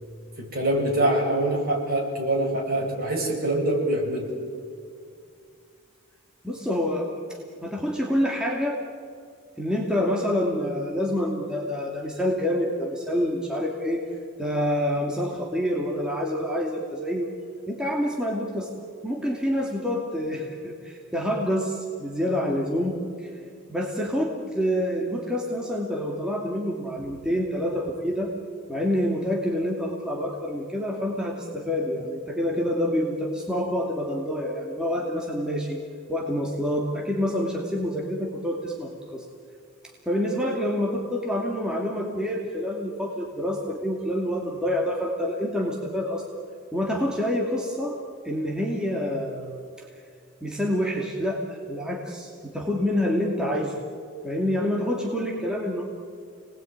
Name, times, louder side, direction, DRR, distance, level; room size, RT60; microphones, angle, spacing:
voice 1, 0.4-4.3, right 1 dB, 45° right, -1 dB, 7.6 m, -24 dB
voice 2, 6.4-8.8 9.6-14.0 14.4-17.3 17.7-18.7 19.0-23.3 23.7-28.3 28.7-35.8 36.1-39.2 40.1-46.3 46.7-48.0 48.2-49.9 50.4-53.8 54.2-55.8, equal, 5° right, -2 dB, 2.5 m, -27 dB
30.0 x 20.0 x 9.5 m, 2.3 s
head